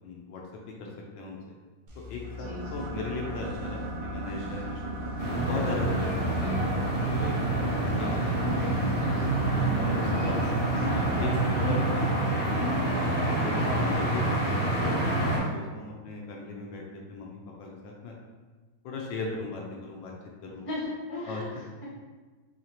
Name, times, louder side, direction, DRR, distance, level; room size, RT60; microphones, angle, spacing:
voice 1, 0.0-1.5 2.1-5.1 5.5-6.5 7.0-9.1 9.7-10.4 10.8-12.7 13.2-16.8 17.1-18.2 18.8-20.1 20.4-20.6 21.2-21.4, left 3 dB, 75° left, -1 dB, 1.2 m, -38 dB
sound 1, 1.9-9.8, left 7 dB, 65° right, 1.3 m, -43 dB
sound 2, 2.2-11.6, right 3 dB, 25° right, 0.5 m, -37 dB
voice 2, 2.4-2.9 10.0-10.5 10.9-11.0 13.5-13.7 20.7-21.9, left 2 dB, 40° left, -6 dB, 0.4 m, -38 dB
sound 3, 5.2-15.4, right 1 dB, 55° left, 2.0 m, -27 dB
4.3 x 2.8 x 2.9 m, 1.3 s
omnidirectional pair, 2.2 m